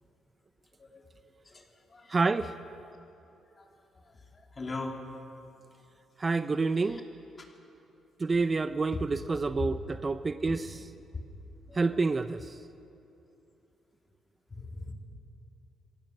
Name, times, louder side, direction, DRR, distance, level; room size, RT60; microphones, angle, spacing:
voice 1, 2.1-2.5 6.2-7.0 8.2-10.8 11.7-12.6, right 3 dB, 30° right, 12 dB, 0.6 m, -28 dB
voice 2, 3.6-5.0 6.8-7.0 7.4-7.5 9.6-9.7 10.5-10.6 11.7-12.0 14.5-14.9, left 3 dB, 30° left, 2 dB, 3.0 m, -41 dB
24.5 x 17.0 x 6.6 m, 2.8 s
cardioid pair, 90°, 0 cm